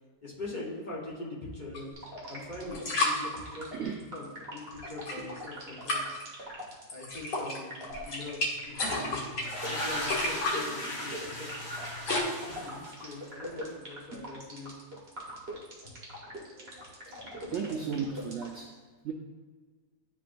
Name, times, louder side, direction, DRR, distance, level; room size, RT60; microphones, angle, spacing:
voice 1, 0.2-1.9 2.3-6.3 6.9-11.5 12.0-14.7 15.8-15.9 16.6-16.7 17.0-17.5, left 2 dB, 35° left, -5 dB, 1.0 m, -43 dB
sound 1, 1.7-1.8 2.7-3.2 4.8-5.4 5.9-6.2 6.9-7.6 7.9-12.2, left 2 dB, 75° left, 2.0 m, -32 dB
sound 2, 1.9-18.6, equal, 40° right, 1.5 m, -43 dB
voice 2, 3.7-4.0 17.1-17.2 17.5-18.8 19.0-19.1, right 6 dB, 85° right, 1 dB, 0.6 m, -34 dB
sound 3, 8.7-13.3, equal, 55° left, 1.8 m, -37 dB
10.5 x 3.7 x 2.5 m, 1.4 s
omnidirectional pair, 1.8 m